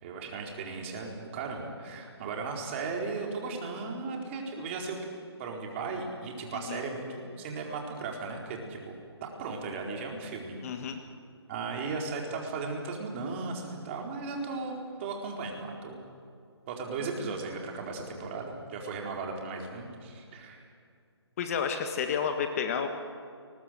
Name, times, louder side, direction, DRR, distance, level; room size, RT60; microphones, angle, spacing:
voice 1, 0.0-5.0 5.4-8.9 9.2-10.6 11.5-16.0 16.7-20.6, right 4 dB, 25° right, 1 dB, 4.2 m, -36 dB
voice 2, 10.6-11.0 21.4-22.9, left 7 dB, 30° left, 6 dB, 1.6 m, -30 dB
29.5 x 21.0 x 7.8 m, 2.3 s
hypercardioid pair, 160°, 14 cm